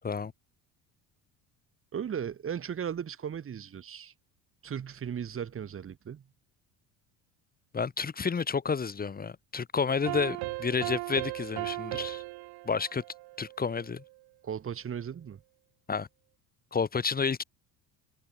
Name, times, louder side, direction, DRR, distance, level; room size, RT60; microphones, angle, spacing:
voice 1, 1.9-4.1 4.6-6.2 14.4-15.4, right 8 dB, 35° right, 3.9 m, -36 dB
voice 2, 7.7-12.2 12.7-13.0 13.4-14.0 15.9-16.1 16.7-17.4, left 5 dB, 25° left, 2.8 m, -30 dB
sound 1, 9.9-14.1, right 23 dB, 75° right, 4.8 m, -37 dB
cardioid pair, 125°, 38 cm